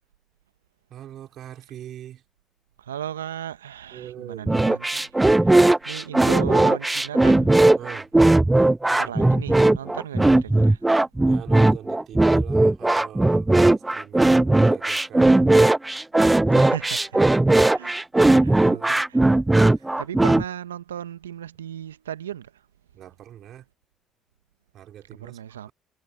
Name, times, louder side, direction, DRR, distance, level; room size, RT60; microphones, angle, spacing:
voice 1, 0.9-2.2 3.9-4.6 7.7-8.1 9.0-9.1 11.2-15.5 18.4-18.9 19.8-19.9 22.9-23.7 24.7-25.7, right 11 dB, 55° right, 4.4 m, -42 dB
voice 2, 2.8-7.8 8.9-10.8 16.5-17.2 17.6-17.9 18.3-19.2 19.7-22.6 25.2-25.7, right 10 dB, 85° right, 1.3 m, -36 dB
sound 1, 4.5-20.4, right 2 dB, 15° right, 0.4 m, -18 dB
figure-of-eight pair, 50°, 0 cm